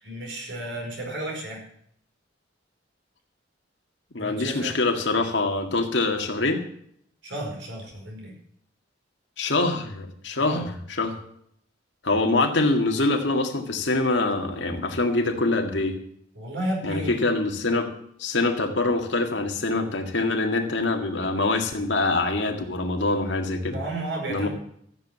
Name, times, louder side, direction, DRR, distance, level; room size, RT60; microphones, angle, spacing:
voice 1, 0.0-1.6 4.2-4.8 7.2-8.4 10.4-10.7 16.3-17.2 23.6-24.5, right 1 dB, 70° right, -1 dB, 5.0 m, -33 dB
voice 2, 4.1-6.6 9.4-10.6 11.0-11.2 12.0-16.0 16.8-17.9 18.2-23.7 24.3-24.5, left 2 dB, 70° left, 3 dB, 2.0 m, -24 dB
14.0 x 7.6 x 8.3 m, 0.67 s
head